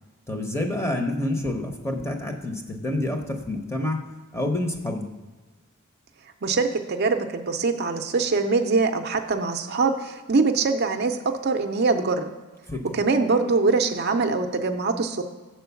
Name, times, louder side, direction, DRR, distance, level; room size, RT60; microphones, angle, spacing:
voice 1, 0.3-4.0 4.3-5.1 12.7-12.8, left 1 dB, 10° left, 3 dB, 0.7 m, -28 dB
voice 2, 6.4-12.3 12.9-15.2, right 4 dB, 45° right, 6 dB, 0.5 m, -23 dB
7.6 x 4.5 x 6.9 m, 1.3 s
head